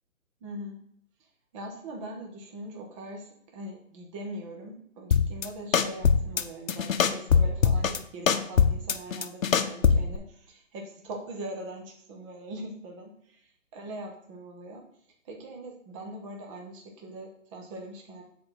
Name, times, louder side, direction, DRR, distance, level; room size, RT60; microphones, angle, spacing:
voice 1, 0.4-0.8 1.5-13.1 13.7-14.9 15.2-18.2, right 1 dB, 25° right, 0 dB, 1.2 m, -41 dB
sound 1, 5.1-5.5 5.7-6.4 6.7-8.0 8.3-10.2, left 6 dB, 75° left, 0.8 m, -22 dB
6.8 x 4.4 x 5.4 m, 0.68 s
hypercardioid pair, 145°, 41 cm